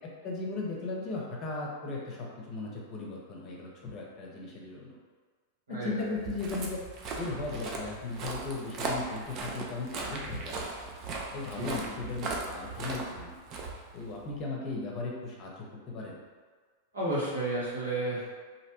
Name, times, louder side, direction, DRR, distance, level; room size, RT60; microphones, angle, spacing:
voice 1, 0.2-5.0 5.7-6.8 7.1-10.6 11.3-13.3 13.9-16.2, left 3 dB, 40° left, -2 dB, 0.7 m, -37 dB
voice 2, 5.7-6.3 11.5-11.9 16.9-18.3, right 2 dB, 85° right, -8 dB, 1.1 m, -33 dB
Walk footsteps, 6.1-14.4, right 3 dB, 40° right, 0.4 m, -38 dB
2.6 x 2.1 x 2.9 m, 1.5 s
hypercardioid pair, 100°, 0 cm